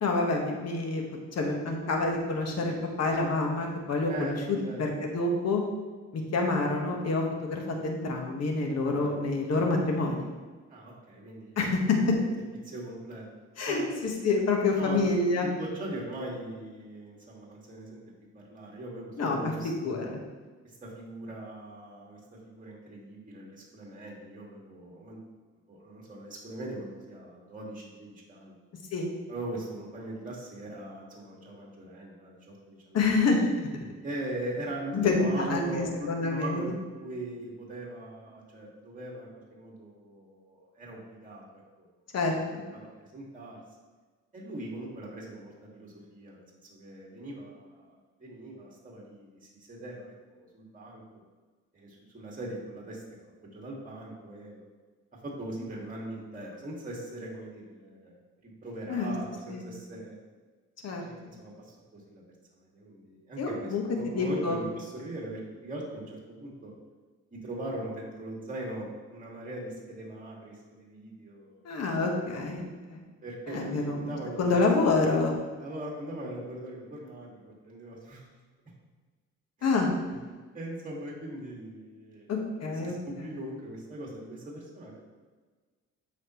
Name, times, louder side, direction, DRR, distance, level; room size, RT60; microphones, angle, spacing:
voice 1, 0.0-1.0 1.3-5.6 6.1-10.3 11.6-12.2 13.6-15.5 19.2-19.5 19.8-20.2 28.9-29.1 32.9-33.5 34.9-36.7 42.1-42.6 58.9-59.1 59.5-59.7 60.8-61.3 63.4-64.6 71.6-72.6 72.9-73.0 73.5-75.3 79.6-79.9 82.3-82.9 83.2-83.3, left 3 dB, 55° left, 1 dB, 1.5 m, -27 dB
voice 2, 4.1-4.9 9.0-9.1 10.7-11.6 12.6-13.3 13.7-13.8 14.8-15.2 15.4-18.0 18.3-20.2 20.6-25.2 25.7-28.6 29.3-33.0 34.0-36.7 37.0-41.9 42.7-43.6 44.3-46.4 46.7-51.0 51.7-53.0 53.4-54.6 55.2-58.2 58.4-60.2 60.9-62.2 62.6-66.7 67.3-71.7 72.1-72.4 73.2-74.8 75.6-78.2 79.6-79.8 80.5-82.3 82.6-85.1, right 1 dB, 25° right, -3 dB, 2.1 m, -40 dB
8.2 x 5.7 x 3.1 m, 1.4 s
cardioid pair, 90°, 30 cm